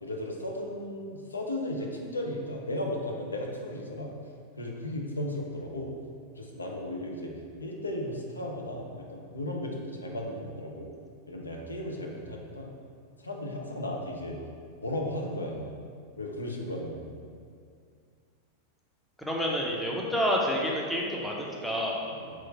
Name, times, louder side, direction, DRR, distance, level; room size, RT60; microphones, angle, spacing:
voice 1, 0.0-4.2 4.6-5.9 6.4-7.3 7.6-10.9 11.3-12.7 13.2-14.4 14.8-15.7 16.2-17.2 22.1-22.3, left 1 dB, 80° left, 0 dB, 0.4 m, -35 dB
voice 2, 19.2-22.0, equal, 5° left, -3 dB, 0.5 m, -29 dB
3.0 x 2.3 x 4.1 m, 2.2 s
figure-of-eight pair, 90°, 0 cm